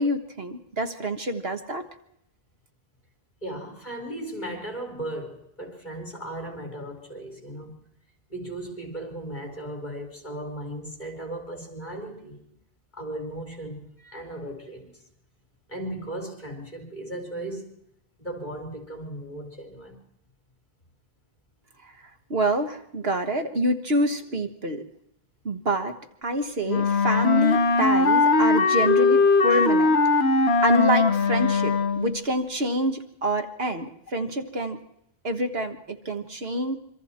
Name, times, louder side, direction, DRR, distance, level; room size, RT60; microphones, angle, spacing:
voice 1, 0.0-1.9 21.8-21.9 22.3-24.9 25.4-25.9 26.2-30.0 30.6-34.8 35.2-36.8, right 1 dB, 70° right, 1.7 m, -27 dB
voice 2, 3.4-7.8 8.3-12.4 12.9-14.9 15.7-17.8 18.2-20.0 29.5-29.7, right 1 dB, 45° left, 4.6 m, -36 dB
Wind instrument woodwind instrument, 26.7-32.2, left 4 dB, 80° left, 1.6 m, -20 dB
26.0 x 24.5 x 4.4 m
omnidirectional pair, 1.0 m